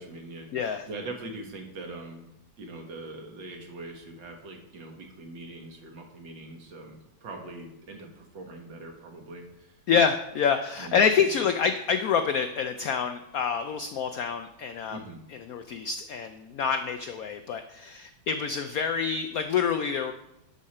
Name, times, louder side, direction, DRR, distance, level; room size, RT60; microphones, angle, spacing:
voice 1, 0.0-2.3 2.6-9.8 10.8-11.3 14.9-15.2, right 2 dB, 65° right, 2 dB, 2.2 m, -42 dB
voice 2, 0.5-0.8 9.9-15.0 15.5-20.1, left 6 dB, 80° left, 8 dB, 0.8 m, -27 dB
11.0 x 6.4 x 4.3 m, 0.86 s
omnidirectional pair, 2.2 m